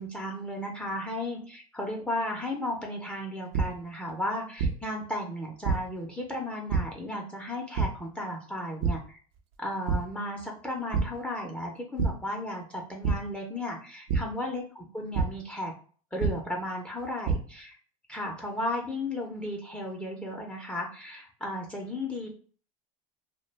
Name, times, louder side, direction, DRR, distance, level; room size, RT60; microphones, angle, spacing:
voice 1, 0.0-9.2 9.6-15.7 16.1-17.8 18.1-22.3, left 1 dB, 5° left, 0 dB, 0.6 m, -34 dB
sound 1, 3.5-3.6 4.6-4.7 5.7-5.8 6.7-6.8 7.8-7.9 8.8-8.9 9.4-9.5 9.9-10.0 10.9-11.0 12.0-12.1 13.0-13.1 14.1-14.2 15.1-15.2 16.2-16.3 17.0-17.3, right 6 dB, 65° right, 0.6 m, -25 dB
2.2 x 2.1 x 3.2 m, 0.42 s
hypercardioid pair, 85°, 18 cm